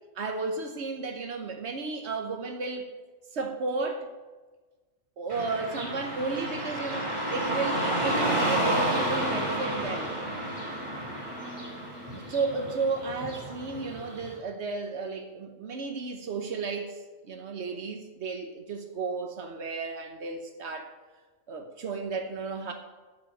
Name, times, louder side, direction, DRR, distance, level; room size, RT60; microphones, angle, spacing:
voice 1, 0.2-2.9 3.3-4.1 5.2-10.1 12.3-17.0 17.2-20.9 21.5-22.7, right 4 dB, 85° right, 5 dB, 1.3 m, -33 dB
Car passing by / Traffic noise roadway noise, 5.3-14.3, right 1 dB, 25° right, 2.9 m, -31 dB
12.5 x 5.1 x 7.0 m, 1.3 s
omnidirectional pair, 1.1 m